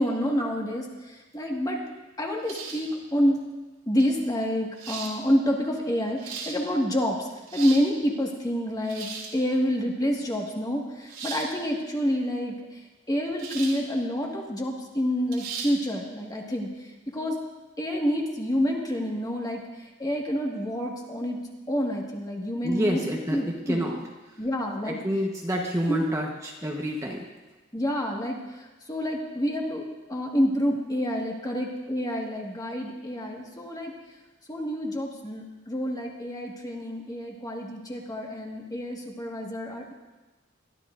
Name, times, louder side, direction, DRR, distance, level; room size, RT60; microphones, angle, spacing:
voice 1, 0.0-1.8 2.2-3.4 3.9-12.8 13.1-17.3 17.8-21.4 21.7-23.0 23.3-23.8 24.4-25.0 25.9-26.0 27.7-29.8 30.1-33.9 34.5-39.9, equal, 20° left, 0 dB, 1.7 m, -28 dB
sound 1, 2.5-2.9 4.0-4.1 4.8-5.1 6.0-6.6 7.3-7.9 8.8-9.4 11.1-11.5 13.4-13.8 14.2-14.3 15.3-15.7, right 5 dB, 90° right, 2.8 m, -37 dB
voice 2, 22.6-24.0 24.8-27.2, equal, 15° right, -1 dB, 1.1 m, -28 dB
21.5 x 12.5 x 2.6 m, 1.2 s
head